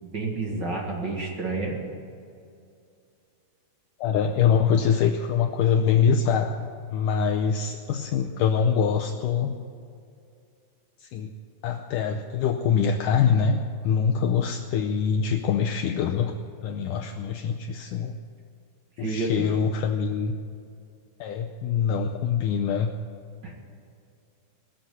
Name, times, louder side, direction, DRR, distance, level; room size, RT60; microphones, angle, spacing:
voice 1, 0.0-1.8 19.0-19.3 23.4-23.5, right 3 dB, 40° right, -1 dB, 1.8 m, -30 dB
voice 2, 4.0-9.6 11.0-11.3 11.6-16.3 16.6-18.2 19.0-20.4 21.2-22.9, left 7 dB, 80° left, 3 dB, 1.9 m, -24 dB
21.0 x 7.2 x 9.2 m, 2.4 s
omnidirectional pair, 4.4 m